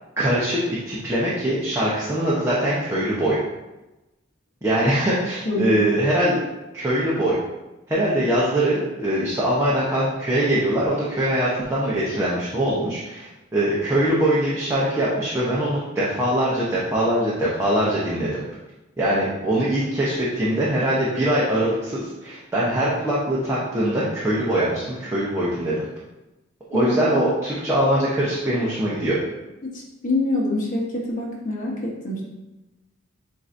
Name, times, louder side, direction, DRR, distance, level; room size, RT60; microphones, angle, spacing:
voice 1, 0.2-3.4 4.6-6.3 6.7-7.4 7.9-18.4 19.0-25.7 26.7-29.2, right 1 dB, 15° right, -8 dB, 0.8 m, -22 dB
voice 2, 5.4-5.8 26.7-27.2 29.6-31.7 32.0-32.2, left 2 dB, 40° left, -2 dB, 1.1 m, -25 dB
7.6 x 2.7 x 2.6 m, 1.0 s
head